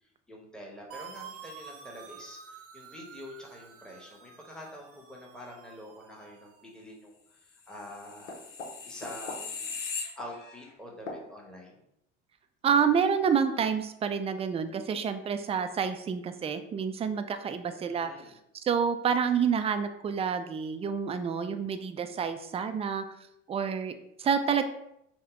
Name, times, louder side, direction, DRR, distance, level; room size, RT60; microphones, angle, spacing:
voice 1, 0.3-8.4 8.9-9.7 10.2-11.8 17.9-18.3, left 1 dB, ahead, -2 dB, 1.0 m, -46 dB
sound 1, 0.9-6.7, right 7 dB, 40° right, 0.7 m, -49 dB
sound 2, 7.8-10.7 11.1-11.2, left 4 dB, 80° left, 0.8 m, -38 dB
voice 2, 12.6-18.1 18.5-23.0 23.5-24.6, right 6 dB, 15° right, 8 dB, 0.4 m, -28 dB
5.7 x 2.1 x 3.6 m, 0.80 s
hypercardioid pair, 70°, 36 cm